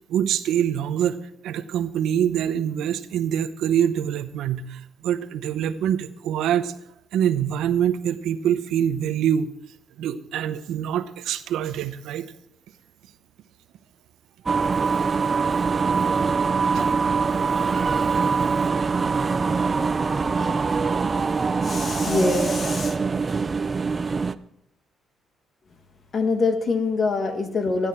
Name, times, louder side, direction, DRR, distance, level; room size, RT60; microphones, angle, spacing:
voice 1, 0.1-1.2 1.4-6.7 7.1-9.5 10.0-12.3 16.7-16.9, right 9 dB, 85° right, 11 dB, 0.7 m, -25 dB
sound 1, 14.5-24.4, right 5 dB, 35° right, 0.5 m, -23 dB
voice 2, 21.6-23.0 26.1-27.9, left 3 dB, 45° left, 7 dB, 1.7 m, -24 dB
14.0 x 11.5 x 4.5 m, 0.76 s
cardioid pair, 90°, 0 cm